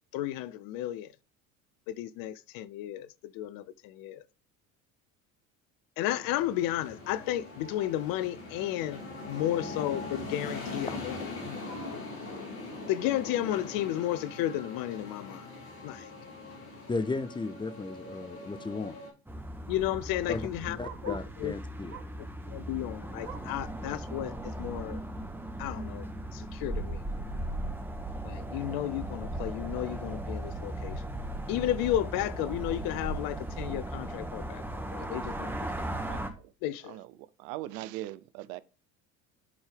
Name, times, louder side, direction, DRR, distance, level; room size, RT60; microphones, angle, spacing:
voice 1, 0.1-1.1 1.9-3.1 3.3-4.2 6.0-9.0 9.3-11.2 11.4-11.7 12.9-15.5 15.8-16.1 19.7-20.8 21.0-21.5 22.5-25.0 25.6-26.1 26.3-27.0 28.2-31.0 31.5-35.5 36.6-36.9, left 13 dB, 55° left, 0.6 m, -33 dB
sound 1, 6.1-19.1, left 2 dB, 80° left, 3.7 m, -41 dB
voice 2, 16.9-19.0 20.3-22.1, left 3 dB, 10° left, 0.5 m, -35 dB
Bark, 19.2-21.4 21.9-22.3 22.7-23.7 24.1-24.2 24.6-24.7 25.4-25.5, right 7 dB, 85° right, 1.0 m, -49 dB
sound 2, 19.3-36.3, right 1 dB, 5° right, 1.4 m, -37 dB
voice 3, 36.1-36.5 36.8-38.6, right 15 dB, 60° right, 0.6 m, -41 dB
11.0 x 4.5 x 3.3 m
hypercardioid pair, 70°, 43 cm